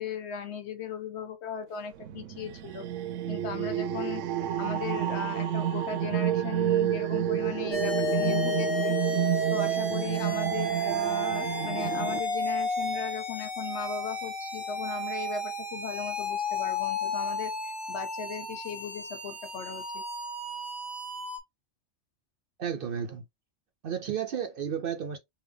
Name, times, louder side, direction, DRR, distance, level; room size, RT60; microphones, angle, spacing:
voice 1, 0.0-2.9 3.3-4.2 4.6-9.0 9.5-20.0, left 7 dB, 65° left, 0.9 m, -37 dB
sound 1, 2.0-12.2, right 10 dB, 90° right, 0.9 m, -29 dB
sound 2, 7.7-21.4, left 1 dB, ahead, 1.0 m, -32 dB
voice 2, 22.6-23.2 23.8-25.2, right 8 dB, 60° right, 0.6 m, -32 dB
3.5 x 2.7 x 3.4 m
omnidirectional pair, 1.3 m